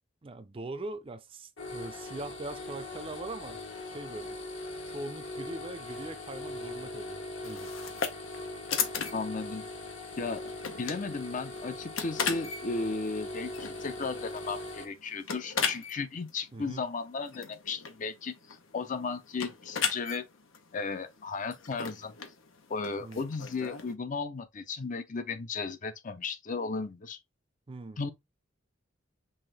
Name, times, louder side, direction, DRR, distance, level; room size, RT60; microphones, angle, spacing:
voice 1, 0.2-3.6 3.9-4.4 4.9-7.7 16.5-16.8 23.0-23.2 27.7-28.0, right 2 dB, 30° right, 0.5 m, -41 dB
sound 1, 1.6-14.8, left 2 dB, 65° left, 1.6 m, -41 dB
sound 2, 7.4-23.9, left 6 dB, 85° left, 0.8 m, -38 dB
voice 2, 9.1-9.7 10.2-10.4 10.8-20.3 20.7-22.1 22.7-27.2 28.0-28.1, left 4 dB, 40° left, 0.5 m, -35 dB
5.6 x 2.6 x 3.3 m
head